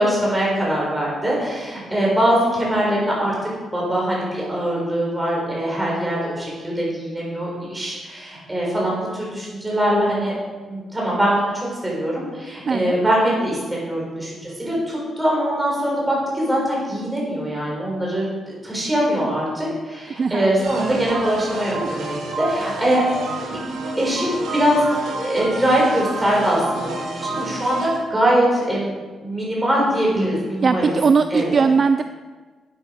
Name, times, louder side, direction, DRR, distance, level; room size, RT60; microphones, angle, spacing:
voice 1, 0.0-10.3 10.7-23.0 24.0-24.9 25.2-28.9 29.2-31.0 31.3-31.7, equal, 10° right, -4 dB, 4.2 m, -22 dB
voice 2, 12.7-13.0 20.2-21.2 30.6-32.0, right 5 dB, 35° right, 10 dB, 0.3 m, -20 dB
sound 1, 20.6-28.0, right 2 dB, 85° right, 3.8 m, -30 dB
11.5 x 8.1 x 5.2 m, 1.3 s
cardioid pair, 165°, 0 cm